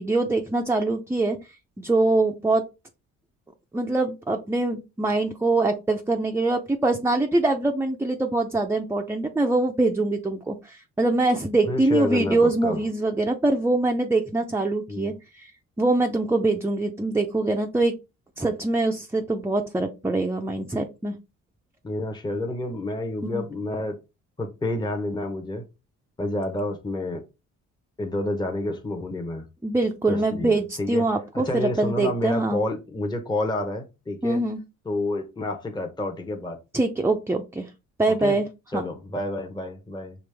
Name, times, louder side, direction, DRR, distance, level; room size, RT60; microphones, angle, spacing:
voice 1, 0.0-1.4 1.8-2.6 3.7-15.5 15.8-17.9 18.4-21.2 23.3-23.4 29.6-32.6 34.2-34.6 36.7-37.7 38.0-38.5 38.7-38.8, right 2 dB, 10° right, 0.5 m, -24 dB
voice 2, 11.7-12.8 14.9-15.1 21.8-24.0 24.4-25.6 26.2-27.2 28.0-29.4 30.1-31.1 31.3-34.4 34.8-36.6 38.2-38.4 38.7-40.1, left 2 dB, 15° left, 0.9 m, -29 dB
5.1 x 3.1 x 3.3 m
cardioid pair, 90°, 30 cm